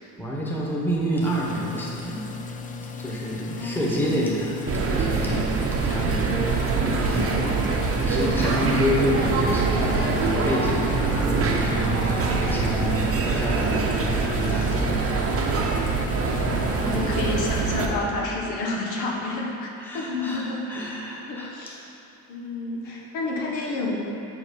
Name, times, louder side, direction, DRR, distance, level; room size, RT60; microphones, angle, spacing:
voice 1, 0.2-2.3 3.0-4.5 4.9-5.6 5.8-7.5 8.0-16.0 19.8-21.5, equal, 5° left, -5 dB, 1.3 m, -29 dB
sound 1, 1.2-17.6, left 4 dB, 25° left, 0.4 m, -36 dB
voice 2, 3.5-4.2 16.4-20.9 21.3-21.8 22.3-24.0, left 2 dB, 85° left, -2 dB, 1.4 m, -30 dB
sound 2, 4.7-17.9, right 4 dB, 40° right, 0.8 m, -24 dB
7.1 x 5.9 x 5.2 m, 2.9 s
cardioid pair, 135°, 36 cm